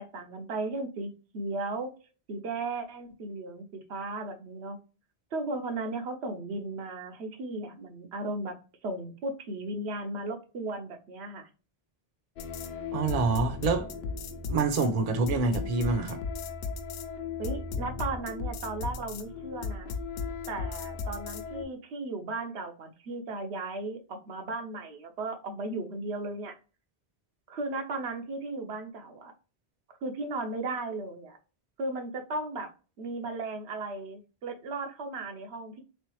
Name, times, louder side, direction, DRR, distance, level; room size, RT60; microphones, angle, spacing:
voice 1, 0.0-1.9 2.3-4.8 5.3-8.6 8.8-11.5 17.4-19.9 20.5-26.5 27.5-29.3 30.0-31.4 31.8-32.7 33.0-35.8, right 2 dB, 90° right, 1.0 m, -36 dB
sound 1, 12.4-21.6, left 4 dB, 70° left, 0.8 m, -36 dB
voice 2, 12.9-13.9 14.5-16.2, right 4 dB, 45° right, 0.6 m, -26 dB
3.7 x 3.2 x 3.0 m
omnidirectional pair, 1.1 m